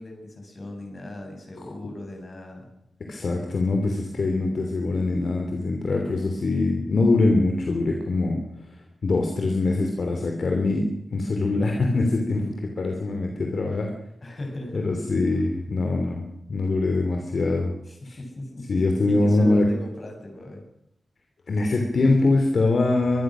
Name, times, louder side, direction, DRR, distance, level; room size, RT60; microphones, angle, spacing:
voice 1, 0.0-2.7 14.2-15.0 17.9-20.6, left 1 dB, 35° left, 3 dB, 7.5 m, -37 dB
voice 2, 3.1-8.4 9.0-13.9 14.7-17.7 18.1-18.2 18.7-19.7 21.5-23.2, left 2 dB, 55° left, 2 dB, 3.2 m, -23 dB
24.0 x 22.0 x 6.4 m, 0.80 s
wide cardioid pair, 125°, 0 cm